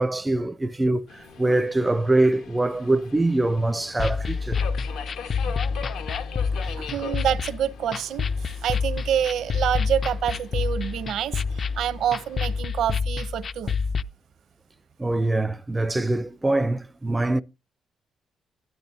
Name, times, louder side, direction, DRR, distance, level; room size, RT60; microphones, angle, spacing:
voice 1, 0.0-4.6 15.0-17.4, right 2 dB, 15° right, 0.4 m, -23 dB
Subway metro underground, 1.1-12.6, left 7 dB, 80° left, 1.4 m, -41 dB
sound 1, 4.0-14.0, left 5 dB, 45° left, 0.4 m, -28 dB
voice 2, 6.6-13.7, right 10 dB, 75° right, 0.7 m, -27 dB
13.0 x 10.5 x 2.7 m
cardioid pair, 90°, 0 cm